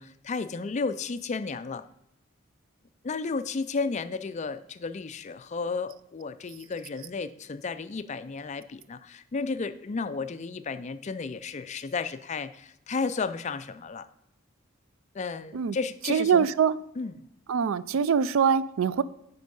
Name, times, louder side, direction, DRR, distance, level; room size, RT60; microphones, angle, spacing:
voice 1, 0.0-1.8 3.0-14.1 15.1-16.5 17.0-17.1, left 4 dB, 35° left, 0.4 m, -33 dB
voice 2, 16.1-16.8 17.5-19.0, right 7 dB, 75° right, 0.4 m, -23 dB
9.8 x 4.5 x 5.3 m
head